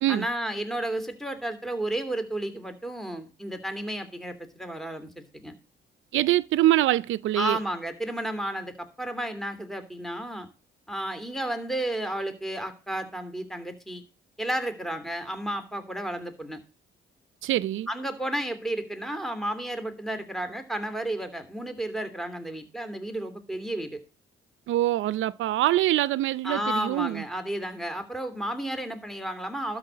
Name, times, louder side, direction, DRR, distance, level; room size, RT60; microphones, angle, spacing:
voice 1, 0.1-5.5 7.4-10.5 10.9-14.0 14.4-16.6 17.9-24.0 26.4-29.8, right 1 dB, ahead, 2.9 m, -32 dB
voice 2, 6.1-7.6 17.4-17.9 24.7-27.3, right 15 dB, 80° right, 0.6 m, -24 dB
12.5 x 4.8 x 8.6 m
cardioid pair, 90°, 20 cm